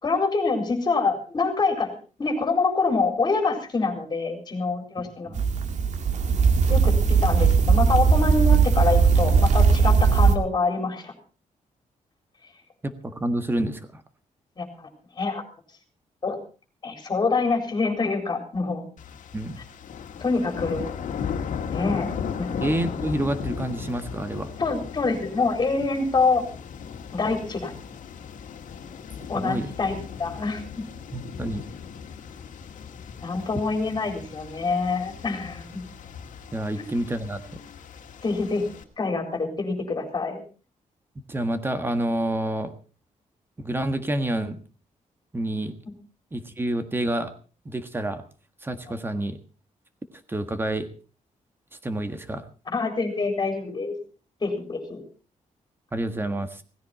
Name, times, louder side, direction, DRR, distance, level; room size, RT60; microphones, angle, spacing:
voice 1, 0.0-5.3 6.7-11.1 14.6-14.9 15.2-15.4 16.2-16.4 16.8-18.9 20.2-20.9 21.7-22.1 22.4-22.6 24.6-26.4 27.1-27.7 29.3-30.6 33.2-35.8 36.8-36.9 38.2-38.7 39.0-40.4 45.9-46.0 48.9-49.0 52.7-53.9 54.4-55.0, left 4 dB, 30° left, 4 dB, 4.2 m, -26 dB
sound 1, 5.3-10.3, right 5 dB, 65° right, 2.1 m, -19 dB
voice 2, 12.8-14.0 19.3-19.6 22.6-24.5 29.3-29.7 31.1-31.6 36.5-37.4 41.3-42.7 43.6-44.6 45.3-45.8 46.3-47.3 47.7-48.2 48.6-49.4 50.3-50.9 51.8-52.4 55.9-56.6, right 1 dB, 15° right, 9 dB, 1.6 m, -28 dB
sound 2, 19.0-38.8, left 7 dB, 80° left, 2.0 m, -36 dB
17.5 x 15.5 x 4.2 m, 0.37 s
wide cardioid pair, 150°, 13 cm